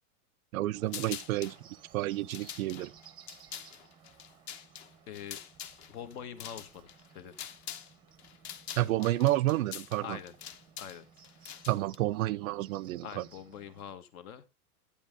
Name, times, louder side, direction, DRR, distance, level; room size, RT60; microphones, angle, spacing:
voice 1, 0.5-1.6 1.9-2.9 8.8-10.2 11.7-13.2, right 16 dB, 65° right, 0.5 m, -30 dB
Bird, 0.7-13.9, right 8 dB, 10° right, 0.5 m, -58 dB
sound 1, 0.9-1.6 2.1-7.9 8.2-12.0, left 9 dB, 45° left, 1.0 m, -45 dB
voice 2, 5.1-5.4 5.9-7.3 10.0-10.3 10.8-11.6 13.0-14.4, left 9 dB, 70° left, 1.5 m, -45 dB
10.0 x 8.8 x 3.5 m
supercardioid pair, 150°, 46 cm